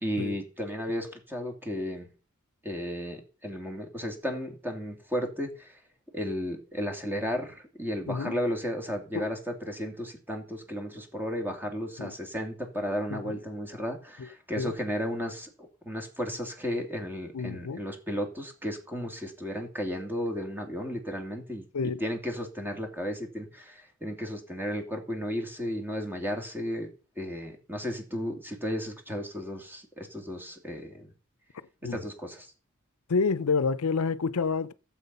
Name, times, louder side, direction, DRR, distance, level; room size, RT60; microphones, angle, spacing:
voice 1, 0.0-2.1 2.6-5.8 6.1-21.6 22.0-26.9 27.2-31.1 31.8-32.5, equal, 10° right, 2.6 m, -34 dB
voice 2, 8.1-8.4 9.1-9.3 12.0-12.1 13.1-13.4 14.2-14.3 14.6-14.7 17.3-17.8 21.7-22.0 31.8-32.0 33.1-34.7, left 4 dB, 90° left, 0.6 m, -28 dB
15.5 x 7.6 x 5.5 m
head